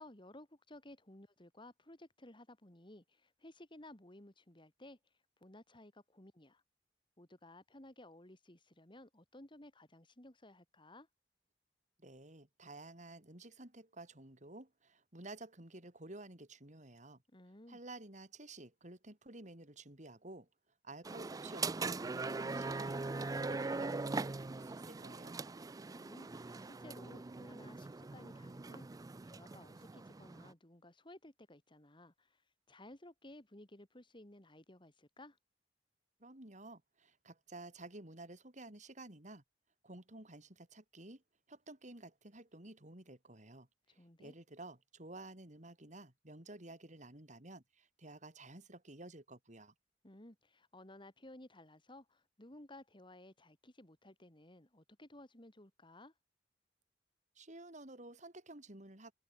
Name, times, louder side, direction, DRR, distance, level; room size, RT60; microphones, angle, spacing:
voice 1, 0.0-5.0 5.4-6.6 7.2-11.1 17.3-17.8 25.9-32.4 32.7-35.4 44.0-44.3 50.0-56.1, left 1 dB, 30° left, 3.0 m, -57 dB
voice 2, 12.0-17.2 17.7-20.5 20.8-23.0 23.3-25.3 36.2-39.4 39.8-41.2 41.5-49.7 57.4-59.1, right 2 dB, 45° right, 4.4 m, -52 dB
sound 1, 21.0-30.5, right 3 dB, 20° right, 0.4 m, -41 dB
head